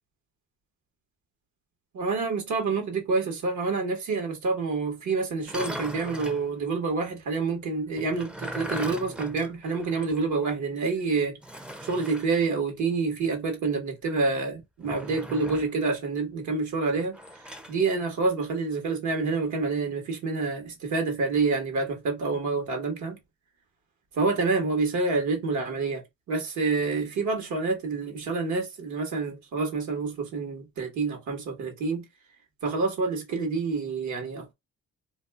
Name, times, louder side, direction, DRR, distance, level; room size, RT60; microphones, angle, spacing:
voice 1, 1.9-11.4 11.8-23.2 24.1-26.0 26.3-32.0 32.6-34.5, right 4 dB, 70° right, 1.4 m, -28 dB
sound 1, 5.4-6.5 8.0-10.2 10.5-10.6 11.4-12.3 14.8-15.8 17.1-17.8, right 1 dB, 5° right, 0.5 m, -39 dB
2.8 x 2.2 x 3.5 m
cardioid pair, 90°, 30 cm